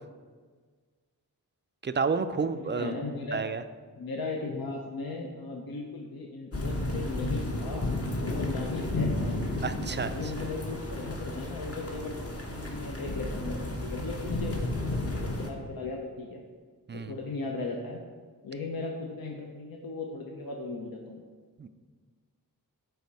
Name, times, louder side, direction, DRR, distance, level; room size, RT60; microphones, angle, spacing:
voice 1, 1.8-2.9 3.3-3.6 9.6-10.1 16.9-17.2 21.6-21.7, right 5 dB, 30° right, 11 dB, 0.4 m, -30 dB
voice 2, 2.4-3.5 4.0-7.8 8.2-9.5 10.0-16.4 16.9-18.0 18.4-21.2, left 3 dB, 65° left, 1 dB, 0.8 m, -37 dB
sound 1, 6.5-15.5, left 2 dB, 40° left, 1.0 m, -32 dB
6.8 x 4.3 x 4.7 m, 1.5 s
cardioid pair, 50°, 38 cm